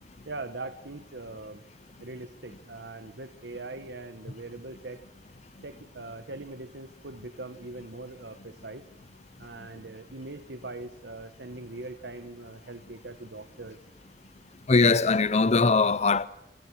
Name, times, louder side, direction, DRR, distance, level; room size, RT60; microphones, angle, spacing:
voice 1, 0.3-1.6 2.0-5.0 5.6-8.8 9.4-13.8, right 2 dB, 70° right, 1.3 m, -41 dB
voice 2, 14.7-16.3, left 4 dB, 40° left, 0.7 m, -21 dB
27.0 x 26.5 x 4.8 m
head